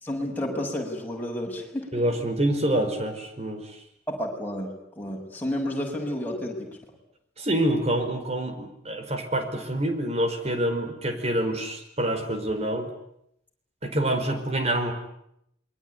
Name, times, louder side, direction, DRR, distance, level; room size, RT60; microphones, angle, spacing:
voice 1, 0.0-1.9 4.1-6.8, left 1 dB, 10° left, -1 dB, 6.8 m, -31 dB
voice 2, 1.9-3.8 7.4-12.9 13.8-14.9, right 1 dB, 35° right, 6 dB, 4.9 m, -26 dB
27.5 x 22.5 x 9.6 m, 0.76 s
head